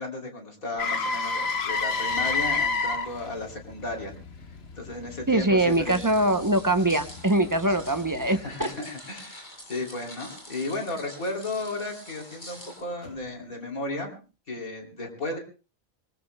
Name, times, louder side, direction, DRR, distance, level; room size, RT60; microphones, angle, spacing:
voice 1, 0.0-4.1 4.8-6.0 8.3-14.2 14.5-15.4, left 2 dB, 90° left, 1 dB, 3.5 m, -34 dB
Motor vehicle (road), 0.8-8.7 13.0-13.2, left 4 dB, 50° left, 1.4 m, -31 dB
voice 2, 5.3-8.7, right 1 dB, 25° right, 9 dB, 0.4 m, -23 dB
sound 1, 5.6-12.8, equal, 35° left, 7.3 m, -46 dB
25.0 x 20.5 x 2.2 m, 0.35 s
omnidirectional pair, 1.4 m